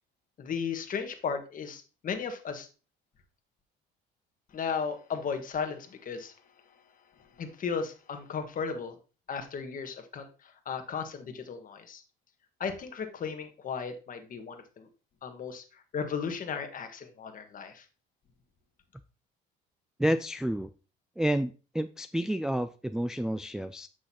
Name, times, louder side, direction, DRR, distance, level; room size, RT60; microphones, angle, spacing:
voice 1, 0.4-2.7 4.5-6.3 7.3-9.0 9.3-12.0 12.6-14.9 15.2-17.8, left 6 dB, 45° left, 6 dB, 1.4 m, -35 dB
voice 2, 20.0-20.7 21.2-23.9, right 1 dB, 5° right, 9 dB, 0.3 m, -30 dB
8.1 x 6.3 x 2.9 m, 0.33 s
cardioid pair, 100°, 20 cm